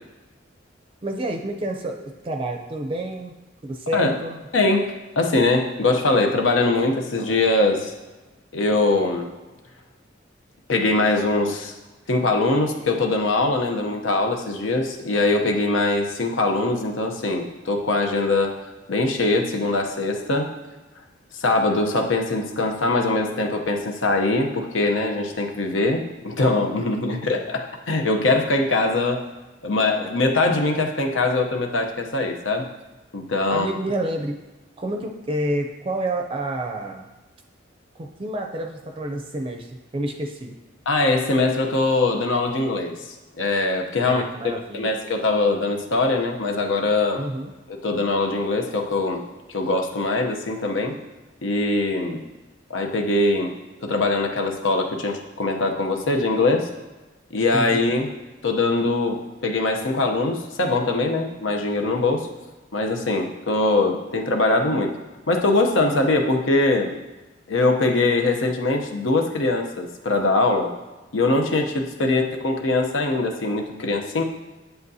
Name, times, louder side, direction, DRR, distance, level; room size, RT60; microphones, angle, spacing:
voice 1, 1.0-3.3 3.6-4.4 27.0-27.3 33.5-34.4 34.8-37.0 38.0-40.5 44.0-44.9 47.2-47.5 57.5-57.8 72.0-72.2, right 1 dB, 30° right, 3 dB, 0.5 m, -29 dB
voice 2, 4.5-7.9 8.5-9.3 10.7-11.7 12.1-18.5 18.9-20.5 21.3-29.2 29.6-32.7 33.1-33.7 40.9-47.2 47.7-49.2 49.5-50.9 51.4-52.2 52.7-53.5 53.8-56.7 57.3-58.1 58.4-62.3 62.7-64.9 65.3-66.9 67.5-70.7 71.1-74.2, left 2 dB, 90° left, 3 dB, 0.8 m, -22 dB
7.9 x 7.8 x 2.7 m, 1.1 s
head